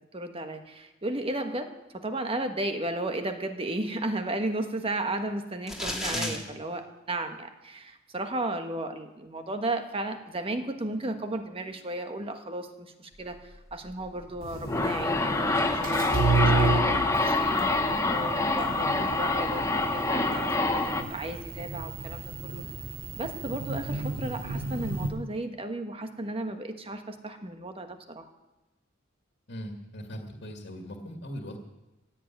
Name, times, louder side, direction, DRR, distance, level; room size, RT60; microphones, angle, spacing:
voice 1, 0.0-13.4 13.7-17.8 18.1-22.6 23.2-28.2, right 1 dB, 30° right, 6 dB, 1.3 m, -34 dB
sound 1, 5.7-6.4, left 1 dB, ahead, 2.3 m, -32 dB
sound 2, 14.4-21.0, left 2 dB, 15° left, 1.0 m, -26 dB
sound 3, 14.4-25.1, right 3 dB, 80° right, 2.6 m, -32 dB
voice 2, 29.5-31.6, equal, 55° left, 2 dB, 2.1 m, -39 dB
16.0 x 7.4 x 9.2 m, 1.0 s
head